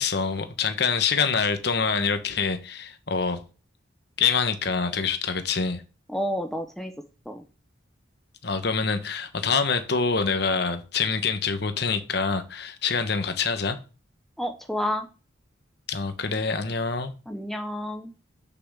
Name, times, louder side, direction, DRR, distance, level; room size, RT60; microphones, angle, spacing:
voice 1, 0.0-3.4 4.2-5.8 8.4-13.8 15.9-17.1, left 5 dB, 55° left, 1.1 m, -25 dB
voice 2, 6.1-6.9 7.3-7.4 14.4-15.1 17.3-18.1, equal, ahead, 0.7 m, -30 dB
6.8 x 6.1 x 6.2 m
head